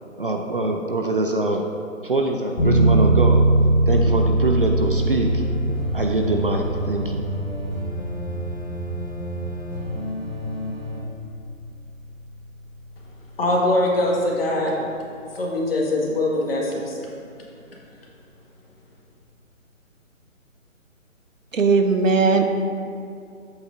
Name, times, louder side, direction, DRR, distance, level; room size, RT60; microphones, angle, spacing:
voice 1, 0.2-1.7 2.0-3.4 3.9-5.4 5.9-7.2, right 2 dB, 40° right, 2 dB, 0.5 m, -24 dB
sound 1, 2.6-13.1, right 2 dB, 30° left, 1.6 m, -23 dB
sound 2, 4.7-11.0, equal, 5° left, 2.0 m, -32 dB
voice 2, 13.4-14.7 15.3-17.0, left 1 dB, 45° left, -3 dB, 2.0 m, -22 dB
voice 3, 21.5-22.5, right 4 dB, 65° right, 5 dB, 0.9 m, -18 dB
11.5 x 8.0 x 2.7 m, 2.4 s
figure-of-eight pair, 150°, 41 cm